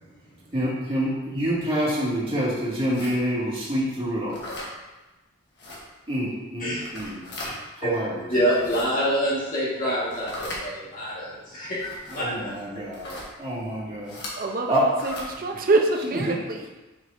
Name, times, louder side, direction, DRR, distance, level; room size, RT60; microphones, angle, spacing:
voice 1, 0.5-4.4 6.1-7.2 7.8-8.2 12.1-14.2 14.7-14.9 16.3-16.4, equal, 25° right, -8 dB, 2.1 m, -27 dB
sound 1, 2.9-3.2 4.3-4.7 5.6-5.8 6.7-7.5 8.4-8.8 10.1-10.6 11.8-12.2 12.9-13.3 14.1-14.3 14.9-15.3, left 1 dB, 55° left, 1.4 m, -37 dB
voice 2, 8.3-13.2, equal, 40° left, -7 dB, 1.6 m, -27 dB
voice 3, 14.4-16.8, right 2 dB, 40° right, 3 dB, 0.6 m, -25 dB
6.5 x 6.2 x 2.6 m, 1.1 s
head